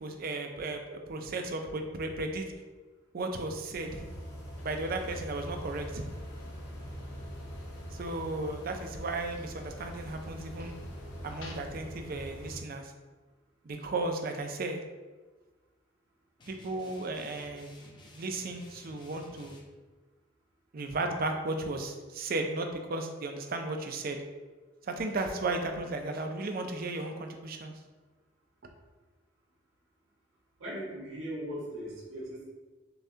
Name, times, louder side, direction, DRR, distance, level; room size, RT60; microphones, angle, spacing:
voice 1, 0.0-2.5 3.1-4.1 4.6-6.0 7.9-10.7 11.2-12.9 13.6-14.8 16.5-17.7 18.1-19.6 20.7-24.2 24.9-27.7, right 2 dB, 50° right, 5 dB, 0.4 m, -35 dB
sound 1, 3.8-12.6, equal, 50° left, 1.3 m, -43 dB
sound 2, 4.5-11.5, left 3 dB, 65° left, 0.6 m, -54 dB
sound 3, 16.4-19.6, left 1 dB, 25° left, 0.5 m, -54 dB
voice 2, 30.6-32.4, equal, 80° right, -5 dB, 1.3 m, -39 dB
6.8 x 2.3 x 2.7 m, 1.3 s
head